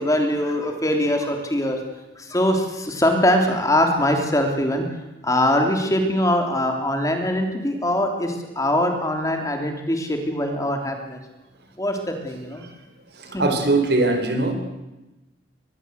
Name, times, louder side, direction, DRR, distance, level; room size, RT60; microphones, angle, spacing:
voice 1, 0.0-1.8 2.2-4.8 5.2-11.2 11.8-12.6 13.3-13.4, left 1 dB, 15° left, 4 dB, 3.2 m, -22 dB
voice 2, 13.1-14.5, right 2 dB, 55° right, 7 dB, 4.0 m, -21 dB
24.0 x 21.0 x 8.2 m, 1.0 s
head